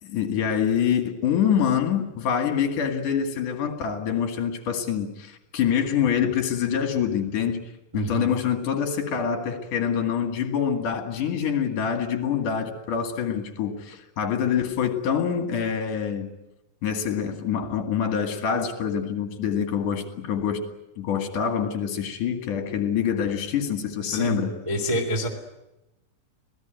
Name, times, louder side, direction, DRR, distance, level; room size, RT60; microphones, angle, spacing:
voice 1, 0.0-7.6 7.9-16.3 16.8-20.6 21.0-24.6, left 8 dB, 55° left, 5 dB, 3.2 m, -25 dB
voice 2, 7.9-8.3 24.0-24.4 24.7-25.3, equal, 10° right, 1 dB, 2.1 m, -26 dB
26.0 x 17.5 x 9.2 m, 0.94 s
omnidirectional pair, 5.1 m